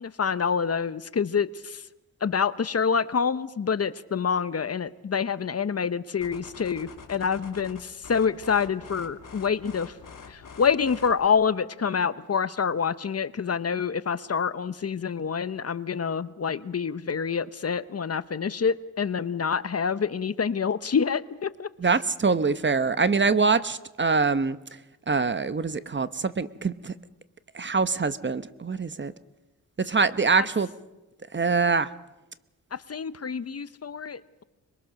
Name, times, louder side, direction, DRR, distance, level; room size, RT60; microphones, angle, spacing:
voice 1, 0.0-1.8 2.2-10.0 10.3-21.7 32.7-34.4, left 6 dB, 45° left, 15 dB, 0.8 m, -27 dB
sound 1, 6.2-11.3, left 5 dB, 65° left, 2.8 m, -46 dB
voice 2, 21.8-24.6 25.1-26.9 27.5-29.1 29.9-30.7 31.3-31.9, right 4 dB, 30° right, 14 dB, 0.9 m, -24 dB
26.0 x 22.0 x 6.4 m, 1.0 s
cardioid pair, 80°, 35 cm